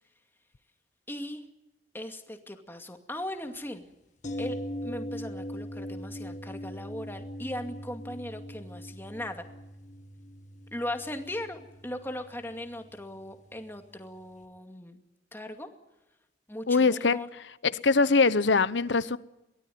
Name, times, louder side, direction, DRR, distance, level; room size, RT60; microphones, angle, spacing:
voice 1, 1.1-1.5 1.9-3.8 4.4-4.6 4.8-9.5 10.7-15.0 15.3-15.7 16.5-17.3, left 1 dB, 10° left, 2.3 m, -38 dB
sound 1, 4.2-14.1 14.4-14.5, equal, 40° left, 2.1 m, -41 dB
voice 2, 16.7-17.2 17.7-19.2, left 4 dB, 80° left, 0.9 m, -22 dB
23.0 x 17.5 x 9.4 m
head